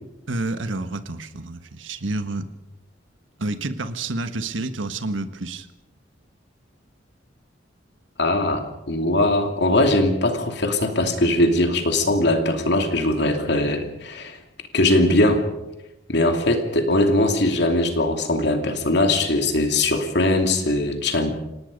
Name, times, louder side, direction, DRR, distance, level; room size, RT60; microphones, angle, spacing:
voice 1, 0.3-2.5 3.4-5.7, right 2 dB, 85° right, 10 dB, 1.4 m, -29 dB
voice 2, 8.2-14.4 14.7-15.4 16.1-21.3, left 1 dB, 60° left, 5 dB, 2.7 m, -20 dB
26.5 x 18.5 x 5.3 m, 0.97 s
head